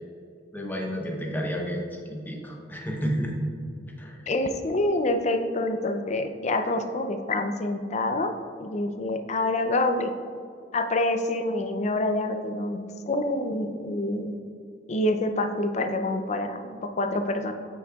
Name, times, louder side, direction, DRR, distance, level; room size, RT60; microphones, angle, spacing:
voice 1, 0.5-3.3 4.0-4.2, equal, 10° left, 0 dB, 0.8 m, -31 dB
voice 2, 4.3-8.3 8.6-10.1 10.7-14.3 14.9-17.5, left 2 dB, 40° left, 7 dB, 0.5 m, -27 dB
9.4 x 6.0 x 2.4 m, 2.3 s
head